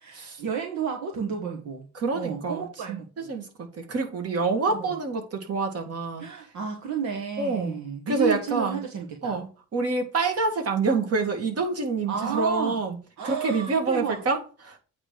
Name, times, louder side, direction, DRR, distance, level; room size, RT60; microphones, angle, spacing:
voice 1, 0.0-1.9 2.1-3.3 4.7-4.9 6.2-9.4 12.1-12.8 13.2-14.2, right 7 dB, 70° right, 1.4 m, -32 dB
voice 2, 1.9-3.5 3.7-6.3 7.4-7.8 8.1-8.8 9.2-9.5 9.7-13.0 13.2-14.8, right 3 dB, 55° right, 2.2 m, -27 dB
8.7 x 3.3 x 6.2 m
cardioid pair, 90°, 30 cm